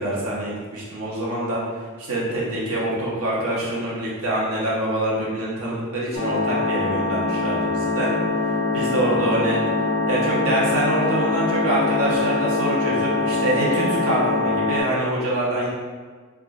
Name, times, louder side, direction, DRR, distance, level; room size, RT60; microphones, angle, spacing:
voice 1, 0.0-1.6 2.0-8.1 8.5-9.6 10.1-15.7, right 1 dB, 75° right, -6 dB, 1.1 m, -25 dB
sound 1, 6.1-14.8, left 3 dB, 40° left, 1.3 m, -23 dB
3.7 x 2.4 x 3.6 m, 1.5 s
head